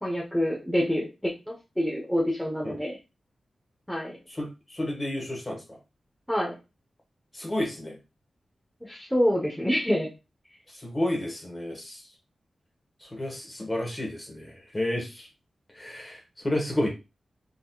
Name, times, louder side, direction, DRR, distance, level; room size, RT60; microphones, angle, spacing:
voice 1, 0.0-3.0 3.9-4.2 6.3-6.6 8.8-10.1, equal, 5° left, -3 dB, 0.8 m, -27 dB
voice 2, 4.3-5.8 7.3-8.0 10.7-12.1 13.0-15.3 15.7-16.9, left 1 dB, 20° left, 1 dB, 1.2 m, -31 dB
3.7 x 2.8 x 2.3 m, 0.26 s
wide cardioid pair, 90°, 0 cm